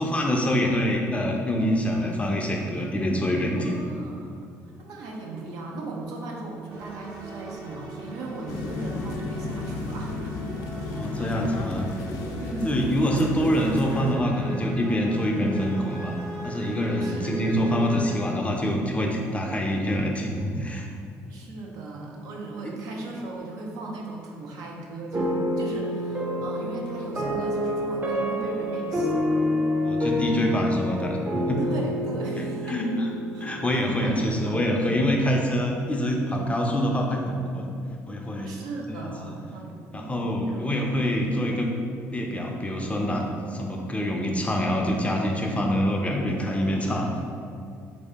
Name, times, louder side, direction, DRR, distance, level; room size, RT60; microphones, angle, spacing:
voice 1, 0.0-3.8 10.9-11.9 12.6-16.2 16.4-20.9 22.6-22.8 29.8-31.6 32.3-33.1 33.4-37.7 38.1-38.5 39.0-39.3 39.9-41.7 42.1-47.1, equal, 20° left, 0 dB, 0.5 m, -25 dB
voice 2, 3.4-4.3 4.8-10.5 10.8-11.4 12.4-13.2 17.0-17.6 21.3-29.1 31.6-32.8 33.3-34.9 38.4-40.7, right 2 dB, 80° right, -1 dB, 0.6 m, -37 dB
sound 1, 6.7-18.2, right 1 dB, 50° right, 1.0 m, -39 dB
sound 2, 8.5-14.1, left 3 dB, 75° left, 0.4 m, -33 dB
sound 3, 25.1-34.3, left 1 dB, 30° right, 0.6 m, -28 dB
3.2 x 2.6 x 3.5 m, 2.3 s
supercardioid pair, 75°, 6 cm